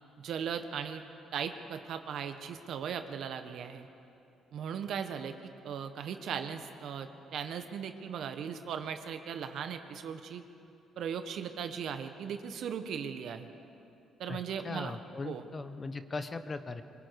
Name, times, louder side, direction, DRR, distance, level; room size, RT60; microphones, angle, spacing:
voice 1, 0.2-1.0 1.3-3.9 4.5-10.4 11.0-13.5 14.2-15.0 15.2-15.4, right 7 dB, 65° right, 8 dB, 1.3 m, -38 dB
voice 2, 14.6-16.8, left 3 dB, 30° left, 10 dB, 1.0 m, -39 dB
24.5 x 22.5 x 4.8 m, 2.7 s
cardioid pair, 110°, 0 cm